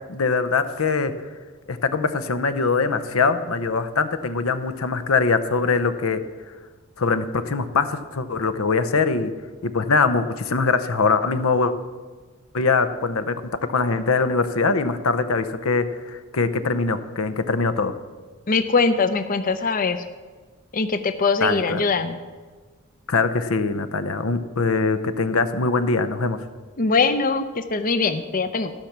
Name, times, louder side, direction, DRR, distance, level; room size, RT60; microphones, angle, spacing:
voice 1, 0.1-1.1 1.7-6.2 7.0-9.3 9.6-11.7 12.5-13.4 13.7-17.9 21.4-21.8 23.1-26.4, left 4 dB, 85° left, 11 dB, 0.8 m, -22 dB
voice 2, 18.5-20.0 20.7-22.2 26.8-28.7, left 4 dB, 40° left, 10 dB, 0.6 m, -22 dB
14.5 x 5.8 x 7.3 m, 1.4 s
head